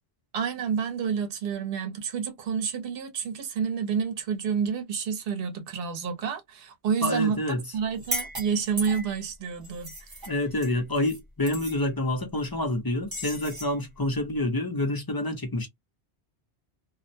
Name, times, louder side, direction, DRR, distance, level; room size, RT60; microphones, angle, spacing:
voice 1, 0.3-9.9, right 6 dB, 60° right, 0.9 m, -29 dB
voice 2, 7.0-7.6 10.3-15.7, left 1 dB, 30° left, 0.5 m, -28 dB
sound 1, 7.9-9.2 9.6-11.2 11.5-11.8 13.1-13.7, right 1 dB, 25° right, 0.7 m, -36 dB
2.3 x 2.1 x 2.6 m
omnidirectional pair, 1.2 m